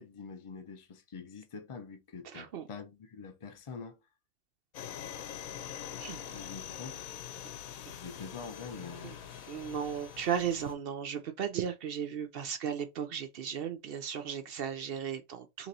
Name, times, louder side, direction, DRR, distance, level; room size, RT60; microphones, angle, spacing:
voice 1, 0.0-4.0 6.3-7.1 8.0-9.6, left 5 dB, 55° left, 0.3 m, -45 dB
voice 2, 2.2-2.6 5.9-6.2 9.0-9.2 9.5-15.7, right 8 dB, 65° right, 0.6 m, -35 dB
sound 1, 4.7-10.7, left 9 dB, 80° left, 1.1 m, -44 dB
2.9 x 2.9 x 3.9 m
omnidirectional pair, 1.5 m